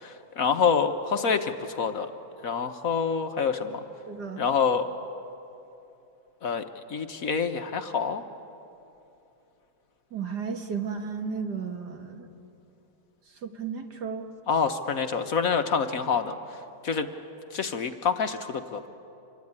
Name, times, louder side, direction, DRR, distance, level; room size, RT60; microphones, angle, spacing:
voice 1, 0.0-2.1 2.4-3.8 4.4-4.9 6.4-6.6 6.9-8.2 14.5-16.3 16.8-17.1 17.5-18.9, left 6 dB, 55° left, 7 dB, 1.3 m, -26 dB
voice 2, 4.1-4.5 10.1-12.3 13.4-14.3, right 6 dB, 65° right, 5 dB, 2.3 m, -34 dB
26.5 x 22.5 x 9.6 m, 2.8 s
omnidirectional pair, 1.9 m